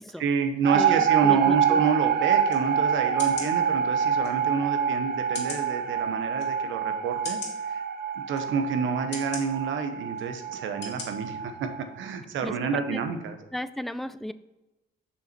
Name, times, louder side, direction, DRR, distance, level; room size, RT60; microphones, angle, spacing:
voice 1, 0.2-7.8 8.1-11.7 12.0-13.4, right 5 dB, 75° right, 7 dB, 1.0 m, -29 dB
sound 1, 0.6-11.8, right 8 dB, 55° right, 0.6 m, -26 dB
voice 2, 0.7-1.8 12.4-13.0 13.5-14.3, left 1 dB, ahead, 14 dB, 0.3 m, -35 dB
sound 2, 2.5-2.6 3.2-3.5 4.2-4.3 5.3-5.7 6.4-6.5 7.2-7.5 8.3-8.5 9.1-9.4 10.1-10.3 10.8-11.1 11.5-11.6, left 4 dB, 65° left, 2.5 m, -37 dB
6.6 x 5.7 x 4.4 m, 1.0 s
cardioid pair, 90°, 20 cm